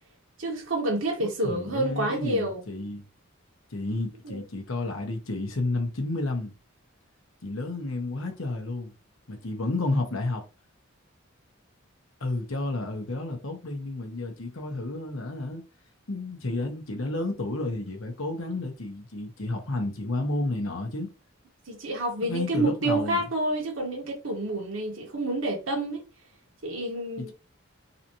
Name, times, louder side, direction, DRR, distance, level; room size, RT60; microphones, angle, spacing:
voice 1, 0.4-2.7 4.2-4.4 21.7-26.0 26.6-27.3, right 1 dB, 75° right, 1.4 m, -28 dB
voice 2, 1.2-3.0 3.7-6.5 7.4-8.9 9.3-10.4 12.2-15.6 16.1-21.1 22.2-23.3 27.2-27.3, left 2 dB, 80° left, 1.2 m, -31 dB
4.0 x 2.7 x 2.9 m
head